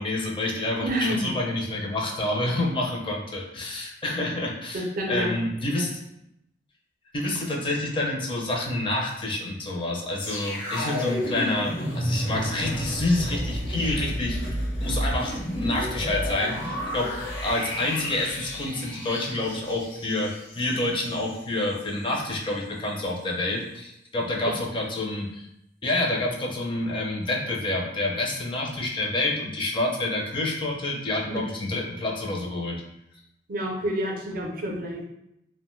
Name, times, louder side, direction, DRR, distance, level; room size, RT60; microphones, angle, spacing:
voice 1, 0.0-6.0 7.1-14.4 14.8-17.1 17.4-20.3 20.6-25.5 25.8-32.8, left 2 dB, 30° left, -1 dB, 0.4 m, -28 dB
voice 2, 0.8-1.3 4.7-5.3 5.7-5.8 24.5-24.6 33.5-35.0, equal, 50° right, 0 dB, 0.5 m, -28 dB
sound 1, 10.2-21.4 21.7-21.9, equal, 80° left, 0.8 m, -31 dB
2.4 x 2.1 x 3.0 m, 0.83 s
head